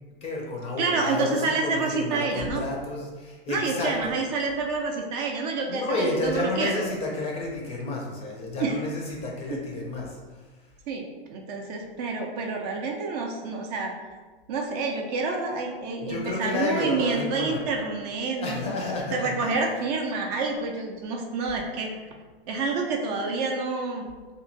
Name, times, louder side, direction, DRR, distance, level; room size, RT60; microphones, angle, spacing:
voice 1, 0.2-4.2 5.7-10.5 16.0-17.6 18.4-19.9, left 2 dB, 20° left, -2 dB, 0.5 m, -31 dB
voice 2, 0.8-2.6 3.5-6.8 8.6-8.8 9.5-9.6 10.9-14.0 14.5-18.8 19.1-21.9 22.5-24.1, right 4 dB, 45° right, 1 dB, 0.4 m, -28 dB
2.9 x 2.6 x 2.5 m, 1.4 s
hypercardioid pair, 120°, 30 cm